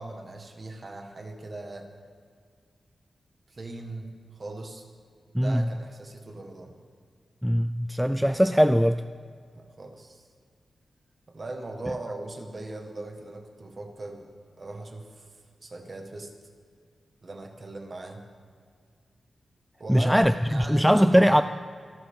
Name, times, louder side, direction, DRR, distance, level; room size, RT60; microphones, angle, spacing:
voice 1, 0.0-1.9 3.5-4.8 5.3-6.7 9.5-10.3 11.3-14.3 14.6-15.3 15.6-16.3 17.2-18.2 19.8-21.3, right 2 dB, 35° right, 4 dB, 1.7 m, -39 dB
voice 2, 7.4-9.0 19.9-21.4, equal, ahead, 10 dB, 0.3 m, -21 dB
26.5 x 11.5 x 3.7 m, 2.1 s
wide cardioid pair, 150°, 0 cm